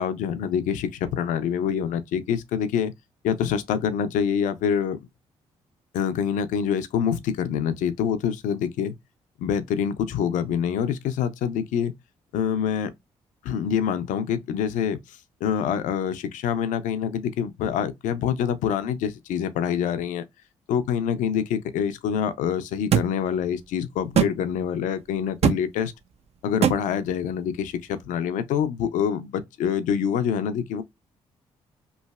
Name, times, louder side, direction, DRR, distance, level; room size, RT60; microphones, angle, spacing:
voice 1, 0.0-2.9 3.2-5.0 5.9-9.0 9.4-11.9 12.3-12.9 13.4-20.2 20.7-25.9 26.4-30.8, left 8 dB, 75° left, 0.5 m, -26 dB
sound 1, 22.9-23.1 24.1-24.3 25.4-25.6 26.6-26.8, right 8 dB, 50° right, 0.5 m, -19 dB
3.1 x 2.5 x 2.3 m
hypercardioid pair, 50°, 13 cm